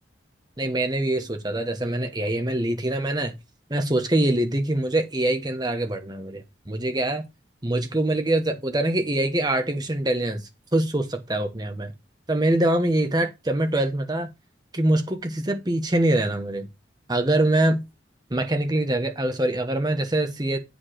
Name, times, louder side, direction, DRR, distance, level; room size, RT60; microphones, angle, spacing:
voice 1, 0.6-3.3 3.7-7.2 7.6-10.4 10.7-11.9 12.3-14.3 14.7-16.7 17.1-17.8 18.3-20.6, right 1 dB, 20° right, 1.0 m, -24 dB
8.2 x 5.2 x 4.9 m
head